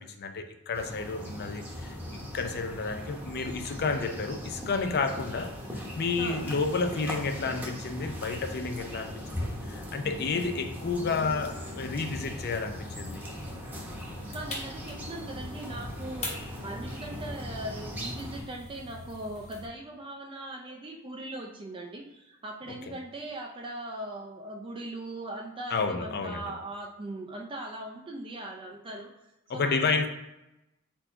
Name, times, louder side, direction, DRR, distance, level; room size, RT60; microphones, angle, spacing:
voice 1, 0.0-13.2 22.9-23.0 25.7-26.5 29.5-30.1, left 4 dB, 45° left, 0.5 m, -31 dB
sound 1, 0.7-18.4, equal, 5° right, 0.9 m, -39 dB
voice 2, 6.2-6.5 14.3-16.3 16.6-29.1 29.5-30.0, right 1 dB, 25° right, 0.5 m, -40 dB
sound 2, 10.7-19.7, left 1 dB, 30° left, 1.3 m, -44 dB
4.4 x 2.8 x 4.4 m
head